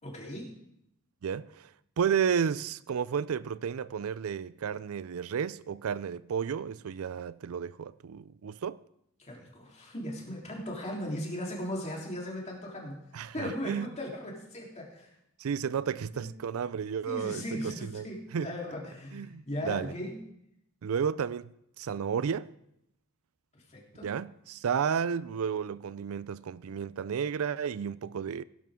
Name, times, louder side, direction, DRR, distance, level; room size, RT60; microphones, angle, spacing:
voice 1, 0.0-0.5 9.2-13.0 13.3-15.1 16.1-16.3 17.1-20.1 23.5-24.1, left 1 dB, 35° left, 3.5 m, -38 dB
voice 2, 1.2-1.7 2.0-8.8 13.1-13.9 15.4-18.1 18.3-18.5 19.1-19.9 20.8-21.5 21.8-22.5 24.0-28.4, right 7 dB, 85° right, 0.4 m, -32 dB
18.5 x 10.5 x 3.7 m
head